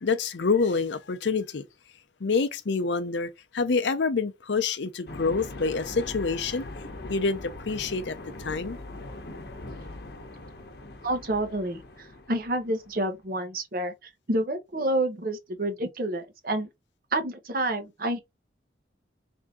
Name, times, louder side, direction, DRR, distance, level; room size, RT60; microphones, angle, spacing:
voice 1, 0.0-1.7 2.2-6.7 7.1-8.8, left 4 dB, 80° left, 0.6 m, -27 dB
sound 1, 5.1-13.1, left 2 dB, 60° left, 0.9 m, -41 dB
voice 2, 11.0-16.7 17.1-18.2, right 1 dB, 50° right, 0.8 m, -29 dB
3.5 x 2.7 x 3.6 m
head